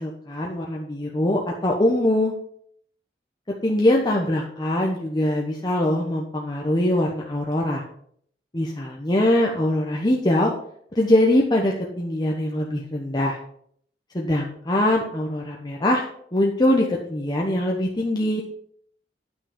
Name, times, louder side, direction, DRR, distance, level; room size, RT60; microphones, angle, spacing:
voice 1, 0.0-2.3 3.6-7.8 8.5-10.5 10.9-13.4 14.1-18.4, left 1 dB, 25° left, -1 dB, 1.1 m, -22 dB
9.5 x 5.9 x 5.2 m, 0.64 s
head